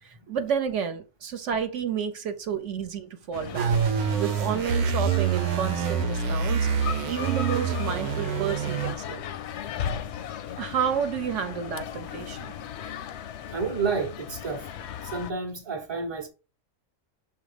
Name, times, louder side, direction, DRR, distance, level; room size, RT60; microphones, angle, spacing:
voice 1, 0.0-3.7 4.1-9.2 10.6-12.5, right 8 dB, 60° right, 1.1 m, -30 dB
sound 1, 3.3-15.3, left 9 dB, 65° left, 0.7 m, -37 dB
sound 2, 3.5-8.9, right 7 dB, 85° right, 1.2 m, -26 dB
voice 2, 13.5-14.6 15.0-16.3, right 4 dB, 25° right, 0.7 m, -30 dB
7.0 x 2.7 x 4.9 m
omnidirectional pair, 1.5 m